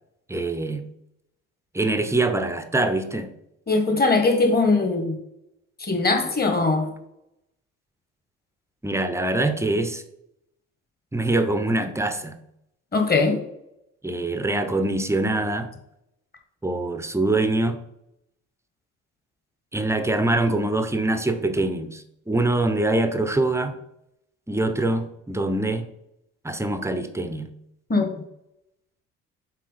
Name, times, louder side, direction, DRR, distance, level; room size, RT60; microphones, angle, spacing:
voice 1, 0.3-0.9 1.7-3.3 8.8-10.0 11.1-12.4 14.0-15.7 16.6-17.8 19.7-23.8 24.5-25.9 26.4-27.5, right 2 dB, 5° right, 9 dB, 0.9 m, -24 dB
voice 2, 3.7-5.2 5.8-6.9 12.9-13.4 27.9-28.1, left 3 dB, 25° left, 5 dB, 1.9 m, -20 dB
7.5 x 4.6 x 4.2 m, 0.82 s
figure-of-eight pair, 55°, 37 cm